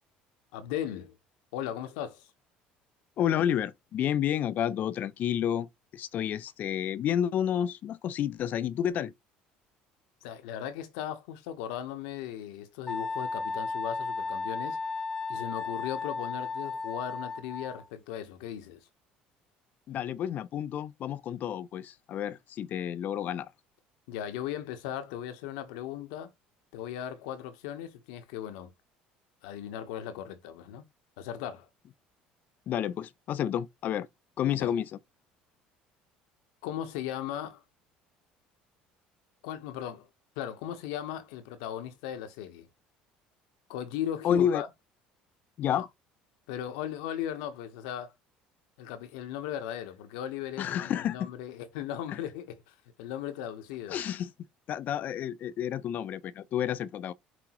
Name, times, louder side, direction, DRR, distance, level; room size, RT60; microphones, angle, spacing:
voice 1, 0.5-1.2 1.5-2.3 10.2-14.8 15.3-18.8 24.1-26.3 26.7-28.7 29.4-30.8 31.2-31.7 34.5-34.7 36.6-37.6 39.4-40.1 40.4-42.7 43.7-44.7 45.7-45.9 46.5-48.1 48.8-54.0, left 10 dB, 85° left, 1.0 m, -37 dB
voice 2, 3.2-9.1 19.9-23.5 32.7-34.1 34.4-34.9 44.2-44.6 45.6-45.9 50.6-51.3 52.1-52.2 53.9-54.3 54.7-57.1, left 10 dB, 55° left, 0.4 m, -30 dB
Wind instrument woodwind instrument, 12.9-17.9, left 4 dB, 15° left, 0.6 m, -34 dB
6.0 x 2.8 x 2.9 m
supercardioid pair, 90°, 4 cm